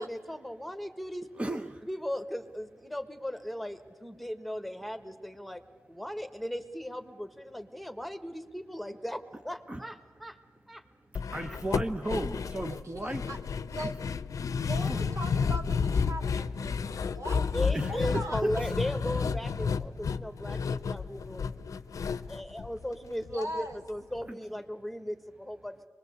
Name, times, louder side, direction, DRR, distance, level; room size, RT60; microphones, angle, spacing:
voice 1, 0.0-1.3 1.8-5.6 5.9-10.4 10.7-10.8 11.3-11.6 17.0-17.2 17.5-21.4 22.3-25.9, equal, ahead, 8 dB, 1.6 m, -37 dB
voice 2, 1.3-1.8 9.7-9.8 11.3-13.2 13.8-13.9 14.9-15.1 17.7-18.7 24.3-24.4, right 1 dB, 20° right, 5 dB, 1.0 m, -35 dB
sound 1, 11.1-23.4 23.7-23.8 24.2-24.3, left 5 dB, 75° left, 0.7 m, -31 dB
voice 3, 12.7-13.4 13.7-13.9 14.6-17.5 17.9-18.4 23.3-23.8, right 1 dB, 70° right, 1 dB, 3.1 m, -39 dB
23.5 x 21.0 x 8.0 m, 1.5 s
cardioid pair, 55°, 6 cm